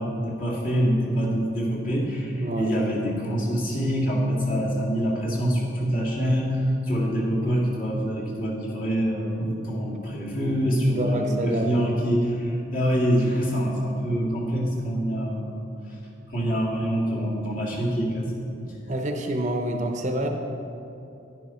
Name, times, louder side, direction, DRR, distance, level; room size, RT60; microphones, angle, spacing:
voice 1, 0.0-15.6 16.3-18.7 20.2-20.3, equal, 45° left, -4 dB, 2.0 m, -25 dB
voice 2, 2.4-2.8 10.1-11.8 18.8-20.3, right 1 dB, 40° right, 4 dB, 0.7 m, -28 dB
11.0 x 10.0 x 4.4 m, 2.8 s
head